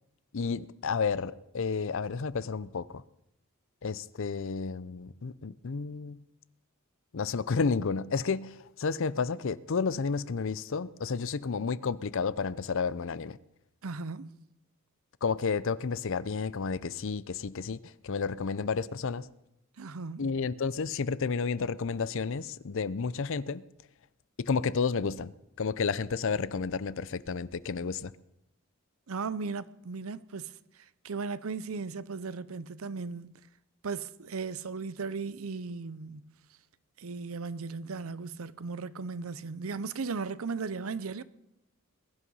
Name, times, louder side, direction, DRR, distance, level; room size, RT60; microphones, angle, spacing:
voice 1, 0.3-3.0 3.8-6.2 7.1-13.4 15.2-19.3 20.2-23.6 24.4-25.3 25.6-28.1, left 5 dB, 65° left, 0.6 m, -31 dB
voice 2, 13.8-14.4 19.8-20.3 29.1-30.5 31.0-33.3 33.8-36.3 37.0-41.2, right 4 dB, 75° right, 0.7 m, -36 dB
21.5 x 11.5 x 5.5 m
head